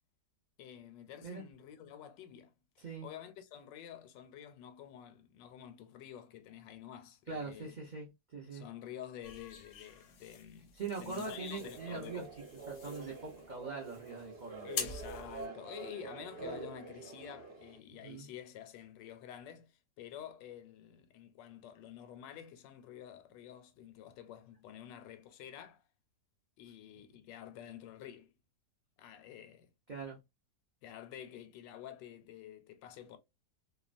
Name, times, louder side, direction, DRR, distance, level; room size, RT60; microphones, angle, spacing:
voice 1, 0.6-2.5 3.0-7.7 8.5-12.3 14.6-25.8 26.6-28.3 29.0-29.7 30.8-33.2, left 10 dB, 85° left, 1.2 m, -49 dB
voice 2, 2.8-3.1 7.3-8.7 10.7-12.3 12.7-14.9 15.4-15.5 17.9-18.3 29.9-30.2, right 4 dB, 70° right, 0.4 m, -42 dB
sound 1, 9.2-15.5, left 5 dB, 65° left, 0.7 m, -46 dB
sound 2, 11.2-17.8, right 4 dB, 40° right, 1.0 m, -47 dB
2.9 x 2.1 x 2.4 m
omnidirectional pair, 1.9 m